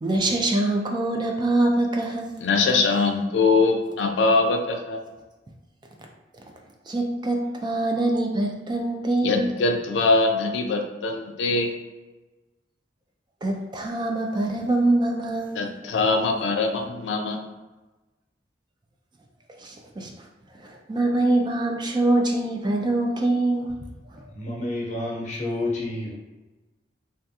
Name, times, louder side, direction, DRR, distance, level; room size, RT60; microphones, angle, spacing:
voice 1, 0.0-2.3 6.9-9.5 13.4-15.7 19.6-20.3 20.6-23.7, right 2 dB, 25° right, 1 dB, 0.3 m, -24 dB
voice 2, 2.4-5.0 9.2-11.7 15.5-17.4, left 3 dB, 85° left, 3 dB, 0.4 m, -22 dB
voice 3, 24.3-26.1, left 2 dB, 45° left, -3 dB, 0.9 m, -29 dB
3.4 x 2.3 x 2.7 m, 1.2 s
head